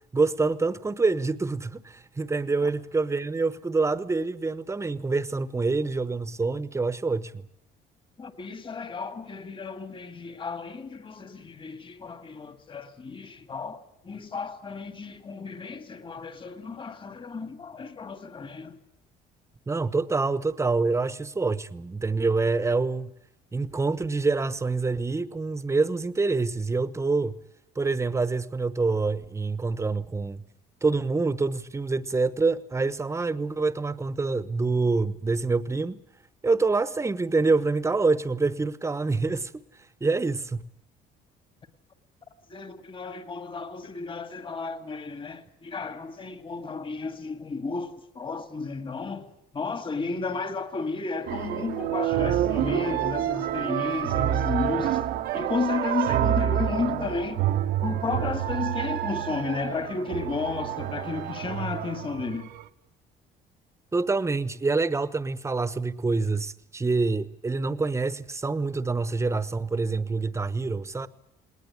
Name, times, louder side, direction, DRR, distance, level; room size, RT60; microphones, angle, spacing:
voice 1, 0.1-7.5 19.7-23.1 23.5-27.3 27.8-30.4 30.8-36.0 36.4-39.6 40.0-40.6 63.9-71.1, right 3 dB, 15° right, 1.0 m, -26 dB
voice 2, 8.2-18.8 42.5-49.3 49.5-55.0 55.3-57.4 57.8-62.5, left 4 dB, 30° left, 2.0 m, -33 dB
sound 1, 51.3-62.6, right 11 dB, 75° right, 1.1 m, -28 dB
19.5 x 19.0 x 9.7 m
cardioid pair, 110°, 17 cm